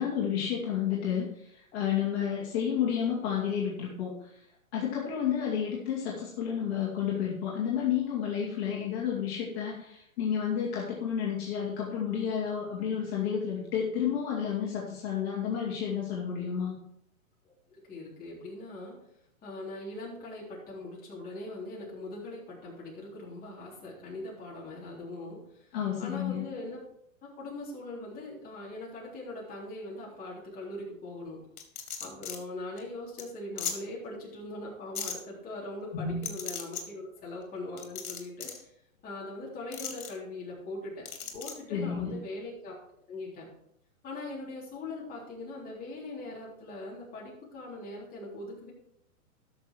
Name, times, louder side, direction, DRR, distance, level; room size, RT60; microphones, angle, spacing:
voice 1, 0.0-4.3 4.7-16.7 25.7-26.4 35.9-36.3 41.7-42.1, left 8 dB, 45° left, -4 dB, 2.6 m, -31 dB
voice 2, 17.7-19.0 19.4-25.4 26.0-26.8 27.2-31.4 32.0-38.5 39.0-41.1 41.3-42.8 43.1-43.5 44.0-48.7, left 2 dB, 20° left, -5 dB, 3.8 m, -41 dB
sound 1, 31.6-32.4 32.8-32.9 33.2-33.3 33.6-33.7 34.9-35.1 36.2-36.8 37.8-38.6 39.7-40.1 41.0-41.5, left 7 dB, 70° left, 2.6 m, -36 dB
12.5 x 6.4 x 4.7 m, 0.73 s
hypercardioid pair, 140°, 43 cm